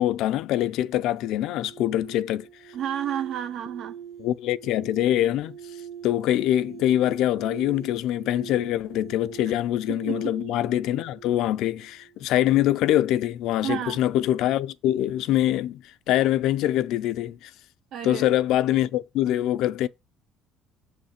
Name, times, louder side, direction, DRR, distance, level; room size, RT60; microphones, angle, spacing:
voice 1, 0.0-2.5 4.2-5.6 6.0-17.5 18.0-19.9, left 13 dB, 65° left, 0.4 m, -24 dB
sound 1, 1.4-12.4, right 8 dB, 75° right, 2.0 m, -43 dB
voice 2, 2.7-3.9 9.9-10.2 13.6-14.0 17.9-18.3, right 10 dB, 55° right, 0.4 m, -31 dB
7.1 x 3.1 x 5.8 m
cardioid pair, 150°, 0 cm